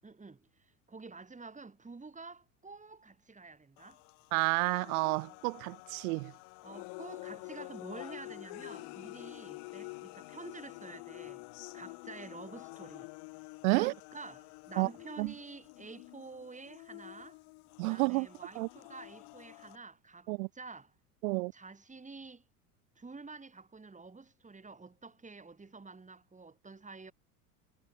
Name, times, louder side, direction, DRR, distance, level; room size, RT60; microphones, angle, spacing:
voice 1, 0.0-4.0 6.6-11.4 11.7-13.1 13.7-17.4 17.9-20.9 21.5-22.5 23.0-27.1, right 4 dB, 15° right, 7.8 m, -49 dB
sound 1, 3.8-19.8, left 29 dB, 55° left, 2.6 m, -48 dB
voice 2, 4.3-6.3 13.6-13.9 14.8-14.9 15.2-15.3 17.8-18.3 18.6-18.7 20.3-20.5 21.2-21.5, right 27 dB, 65° right, 0.9 m, -30 dB
hypercardioid pair, 85°, 46 cm